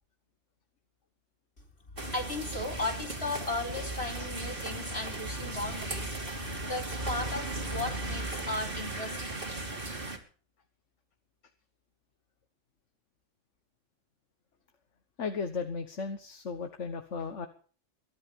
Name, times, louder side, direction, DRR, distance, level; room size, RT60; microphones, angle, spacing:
voice 1, 2.0-9.3, left 2 dB, 60° left, 1 dB, 4.6 m, -36 dB
sound 1, 2.0-10.2, right 2 dB, 50° right, 3.4 m, -36 dB
voice 2, 15.2-17.5, left 5 dB, 80° left, 7 dB, 1.7 m, -35 dB
22.5 x 11.5 x 5.3 m, 0.41 s
omnidirectional pair, 1.2 m